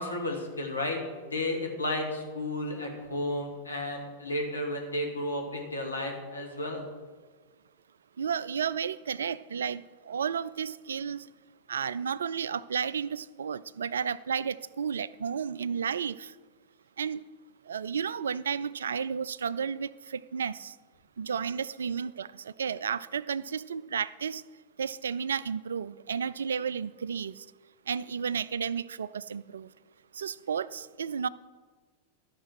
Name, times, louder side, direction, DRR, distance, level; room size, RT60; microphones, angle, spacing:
voice 1, 0.0-6.9, left 1 dB, 80° left, 2 dB, 2.1 m, -33 dB
voice 2, 8.2-11.3 11.7-16.3 17.0-17.2 17.7-20.7 21.2-24.4 24.8-27.5 27.9-29.7 30.1-31.3, right 7 dB, 65° right, 20 dB, 0.3 m, -32 dB
13.0 x 6.0 x 6.3 m, 1.4 s
figure-of-eight pair, 90°, 0 cm